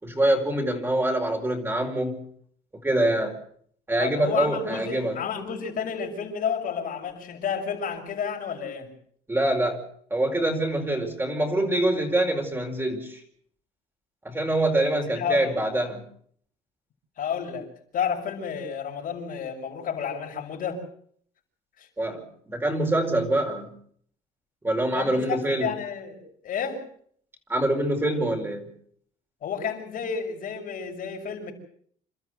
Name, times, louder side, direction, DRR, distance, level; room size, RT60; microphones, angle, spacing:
voice 1, 0.0-2.3 2.7-3.3 3.9-5.2 9.3-9.8 10.1-13.2 14.2-16.0 22.0-23.7 24.6-25.7 27.5-28.7, right 1 dB, 15° right, 2 dB, 4.8 m, -25 dB
voice 2, 4.0-8.9 14.8-15.6 17.2-17.7 17.9-20.8 21.8-21.9 24.9-26.8 29.4-31.5, left 7 dB, 55° left, 1 dB, 6.2 m, -31 dB
28.0 x 13.0 x 8.0 m, 0.63 s
cardioid pair, 110°, 17 cm